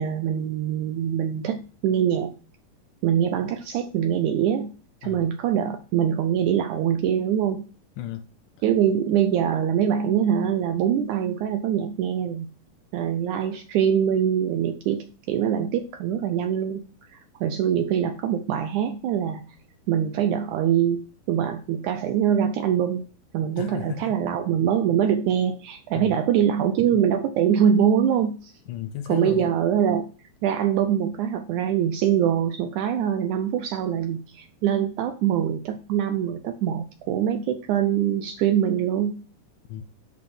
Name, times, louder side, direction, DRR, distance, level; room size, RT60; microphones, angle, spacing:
voice 1, 0.0-2.3 3.0-4.7 5.0-7.6 8.6-12.5 12.9-16.8 17.1-19.4 19.9-23.1 23.3-28.5 29.1-30.1 30.4-39.2, right 9 dB, 80° right, 1.8 m, -23 dB
voice 2, 8.0-8.3 23.6-24.2 26.0-26.2 28.7-29.5 39.7-39.8, left 11 dB, 75° left, 2.0 m, -34 dB
10.5 x 4.2 x 5.9 m
omnidirectional pair, 4.1 m